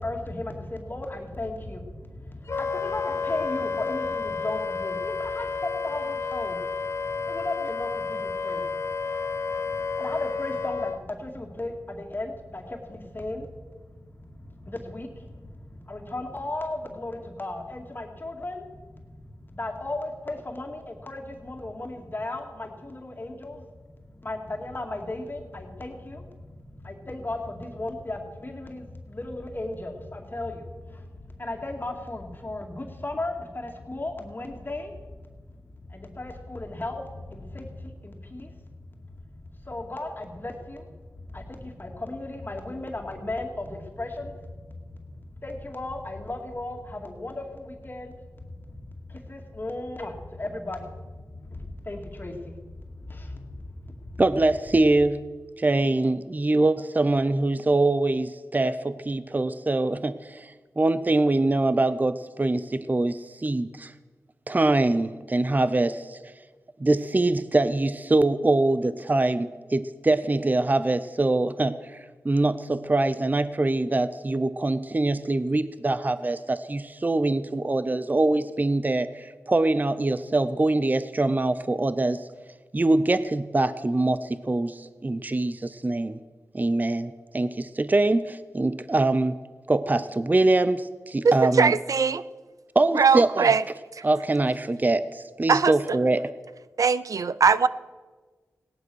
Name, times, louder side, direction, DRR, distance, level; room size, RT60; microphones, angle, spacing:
voice 1, 0.0-54.2, left 2 dB, 35° left, 2 dB, 2.3 m, -36 dB
Wind instrument woodwind instrument, 2.5-11.0, left 4 dB, 50° left, 1.0 m, -30 dB
voice 2, 54.2-55.2 55.6-63.9 64.5-66.2 66.8-82.3 82.7-86.2 86.5-89.4 89.7-91.7 92.7-93.5 94.0-96.3, right 2 dB, 30° right, 14 dB, 0.6 m, -24 dB
voice 3, 91.2-92.2 92.9-93.6 93.9-94.0 95.5-95.7 96.8-97.7, right 5 dB, 70° right, 16 dB, 0.5 m, -20 dB
17.5 x 10.5 x 6.3 m, 1.4 s
cardioid pair, 55°, 6 cm